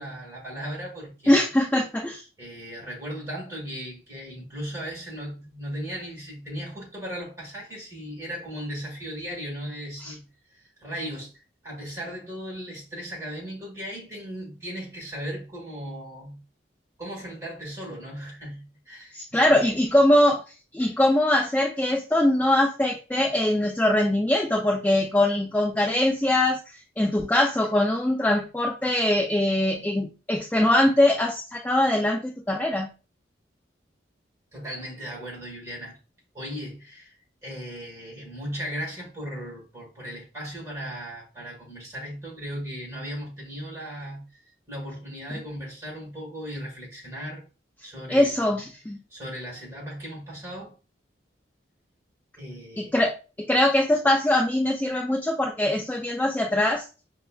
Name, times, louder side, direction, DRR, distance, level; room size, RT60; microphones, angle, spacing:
voice 1, 0.0-1.5 2.4-10.2 10.5-11.3 11.6-16.4 17.0-19.7 34.5-36.0 36.3-37.1 37.4-47.4 47.8-48.5 49.1-50.8 52.4-52.9, equal, 15° right, 1.5 m, -37 dB
voice 2, 1.3-2.2 10.0-10.1 19.1-20.4 20.7-32.9 48.1-49.0 52.8-56.9, left 1 dB, 10° left, 0.3 m, -22 dB
5.2 x 2.2 x 2.3 m
head